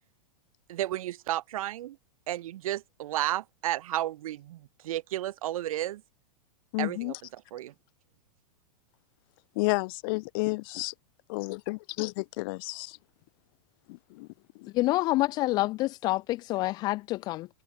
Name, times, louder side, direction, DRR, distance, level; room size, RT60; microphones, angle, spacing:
voice 1, 0.7-2.0 2.3-6.0 6.8-7.7, right 13 dB, 65° right, 0.9 m, -33 dB
voice 2, 6.7-7.1 9.6-10.9 11.3-13.0 13.9-14.3 14.6-14.7, left 26 dB, 35° left, 1.1 m, -31 dB
voice 3, 14.7-17.5, left 18 dB, 20° left, 0.6 m, -27 dB
supercardioid pair, 170°, 19 cm